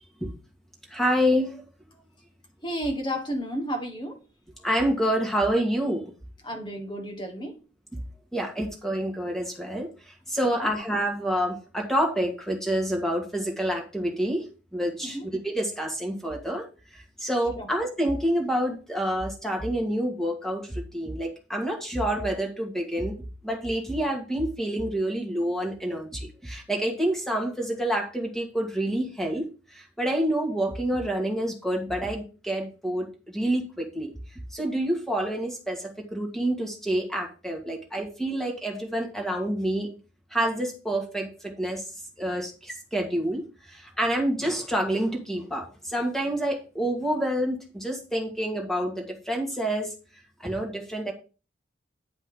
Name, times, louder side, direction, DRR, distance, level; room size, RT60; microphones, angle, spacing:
voice 1, 0.9-1.6 4.6-6.1 8.3-14.5 14.7-16.7 16.9-23.1 23.4-39.9 40.3-41.9 42.2-49.9 50.4-51.1, right 1 dB, ahead, 1.8 m, -28 dB
voice 2, 2.6-4.2 6.4-7.6 10.4-10.7 15.0-15.3 17.6-17.7, equal, 25° left, 1.5 m, -32 dB
9.8 x 5.3 x 3.8 m
head